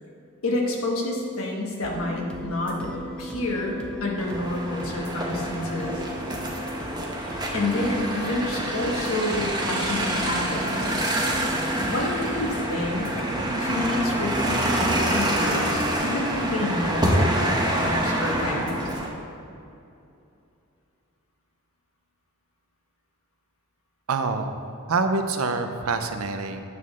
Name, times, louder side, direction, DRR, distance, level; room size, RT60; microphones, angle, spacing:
voice 1, 0.4-6.0 7.2-11.0 11.8-13.1 13.6-18.9, left 1 dB, 70° left, -1 dB, 1.4 m, -29 dB
sound 1, 1.8-19.0, left 1 dB, 5° left, 0.6 m, -37 dB
sound 2, 4.2-19.1, right 1 dB, 20° right, 1.0 m, -27 dB
voice 2, 24.1-24.6 24.9-26.6, right 4 dB, 75° right, 7 dB, 0.6 m, -26 dB
9.4 x 3.9 x 6.2 m, 2.6 s
head